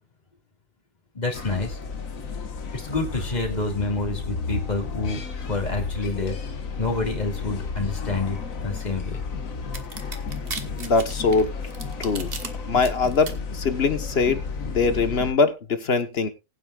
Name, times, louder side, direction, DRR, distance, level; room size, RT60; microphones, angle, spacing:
voice 1, 1.1-1.8 2.7-6.4 6.8-9.2, left 3 dB, 30° left, 3.0 m, -28 dB
sound 1, 1.3-15.3, left 4 dB, 85° left, 1.8 m, -32 dB
sound 2, 9.7-12.5 12.8-13.3, right 4 dB, 45° right, 1.7 m, -35 dB
voice 2, 10.8-11.5 12.0-12.3 12.7-16.3, left 4 dB, 50° left, 1.4 m, -22 dB
19.5 x 9.2 x 2.4 m
omnidirectional pair, 1.4 m